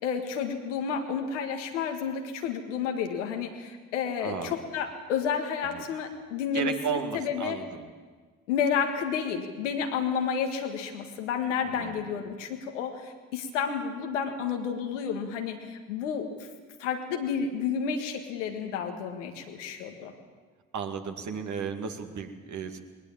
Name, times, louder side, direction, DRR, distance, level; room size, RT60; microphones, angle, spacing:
voice 1, 0.0-7.6 8.5-16.5 16.8-20.1, left 6 dB, 80° left, 4 dB, 1.8 m, -31 dB
voice 2, 4.2-4.6 5.7-5.8 6.5-7.9 11.6-12.1 20.7-22.8, right 6 dB, 50° right, 5 dB, 2.3 m, -34 dB
20.5 x 20.0 x 7.4 m, 1.4 s
figure-of-eight pair, 40°, 36 cm